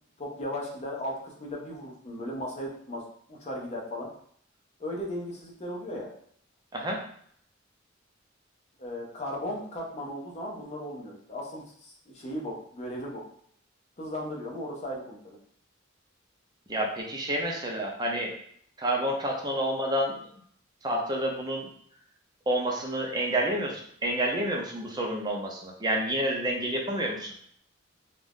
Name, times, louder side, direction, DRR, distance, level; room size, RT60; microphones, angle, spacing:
voice 1, 0.2-3.0 3.3-4.1 4.8-6.1 8.8-13.2 14.0-15.4, left 1 dB, 35° left, -1 dB, 0.7 m, -36 dB
voice 2, 16.7-18.3 18.8-20.2 20.8-21.7 22.5-27.3, right 1 dB, 20° right, 0 dB, 0.6 m, -29 dB
2.6 x 2.4 x 3.5 m, 0.62 s
head